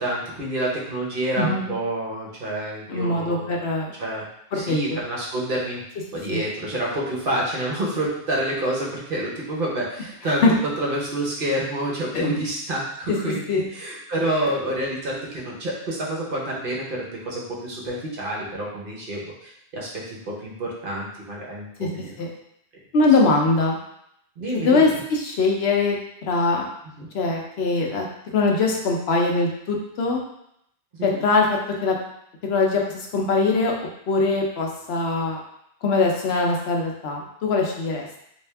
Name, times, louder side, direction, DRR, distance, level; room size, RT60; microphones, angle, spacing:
voice 1, 0.0-3.6 4.0-4.3 4.5-5.8 6.1-10.4 10.8-22.1 24.4-24.9 27.0-27.1 31.0-31.2, right 1 dB, 60° right, -3 dB, 1.0 m, -28 dB
voice 2, 1.4-1.7 2.9-3.9 4.5-4.8 6.3-6.4 10.4-10.5 12.1-12.3 13.1-13.2 13.5-13.7 21.8-21.9 22.2-22.3 22.9-23.8 24.5-26.7 27.1-28.0 28.3-30.2 31.0-32.0 32.4-33.7 34.1-35.4 35.8-38.2, left 3 dB, 75° left, 0 dB, 0.9 m, -22 dB
3.4 x 2.7 x 3.3 m, 0.75 s
omnidirectional pair, 1.1 m